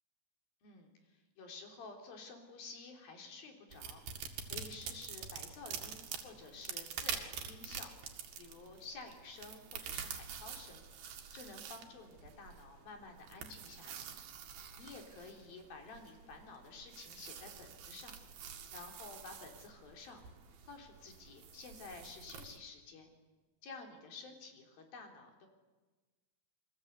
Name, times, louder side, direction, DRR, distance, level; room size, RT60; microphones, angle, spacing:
voice 1, 0.6-4.0 4.5-7.9 8.4-10.8 11.3-14.1 14.8-18.1 18.7-20.2 20.6-23.1 23.6-25.5, left 3 dB, 75° left, 3 dB, 5.4 m, -51 dB
sound 1, 3.7-22.6, right 7 dB, 85° right, 4.0 m, -47 dB
29.5 x 23.5 x 8.3 m, 1.3 s
omnidirectional pair, 4.2 m